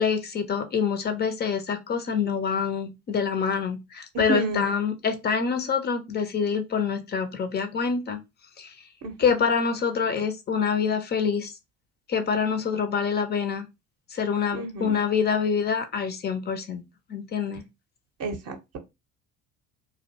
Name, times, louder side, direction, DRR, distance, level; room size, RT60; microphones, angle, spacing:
voice 1, 0.0-8.2 8.6-8.9 9.2-11.6 12.1-13.7 14.1-16.8 17.1-17.6, left 6 dB, 25° left, 0.4 m, -26 dB
voice 2, 4.3-4.6 9.0-9.1 14.5-14.9 18.2-18.8, right 2 dB, 40° right, 0.6 m, -30 dB
2.4 x 2.1 x 2.6 m
figure-of-eight pair, 55°, 42 cm